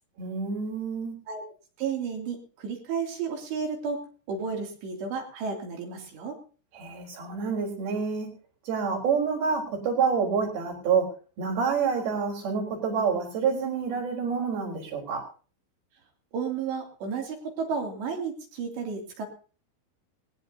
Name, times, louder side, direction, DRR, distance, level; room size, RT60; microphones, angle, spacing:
voice 1, 0.2-1.2 6.7-8.3 8.7-11.1 11.4-15.2, right 5 dB, 55° right, -1 dB, 5.7 m, -27 dB
voice 2, 1.8-6.4 16.3-19.2, right 5 dB, 75° right, 1 dB, 4.9 m, -32 dB
19.0 x 18.5 x 2.8 m, 0.40 s
omnidirectional pair, 5.2 m